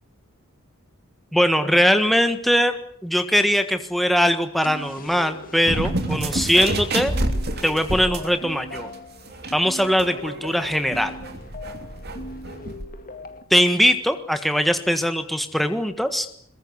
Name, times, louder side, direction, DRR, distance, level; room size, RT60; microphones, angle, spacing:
voice 1, 1.3-2.8 3.0-7.1 7.6-8.9 9.5-11.1 13.5-16.3, equal, ahead, 8 dB, 1.5 m, -21 dB
sound 1, 4.6-13.4, left 1 dB, 40° left, 2.1 m, -40 dB
sound 2, 5.7-8.4 8.7-8.9 9.3-12.8, right 2 dB, 45° right, 3.0 m, -28 dB
22.0 x 22.0 x 8.1 m, 0.65 s
head